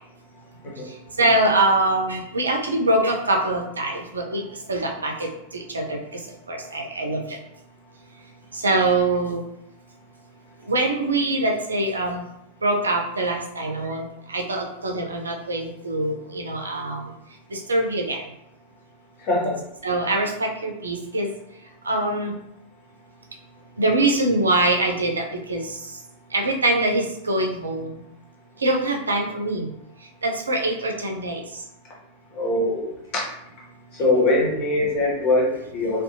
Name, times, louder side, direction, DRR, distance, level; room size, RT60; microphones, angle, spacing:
voice 1, 1.2-6.0 6.5-7.4 8.5-9.4 10.7-12.2 12.6-17.1 17.5-18.2 19.8-21.3 21.9-22.3 23.8-25.8 26.3-27.9 28.6-29.7 30.2-31.4, right 2 dB, 75° right, 2 dB, 0.4 m, -23 dB
voice 2, 19.3-19.6 32.3-32.8 33.9-36.0, left 2 dB, 40° left, -3 dB, 0.9 m, -22 dB
2.6 x 2.2 x 2.6 m, 0.83 s
figure-of-eight pair, 90°, 0 cm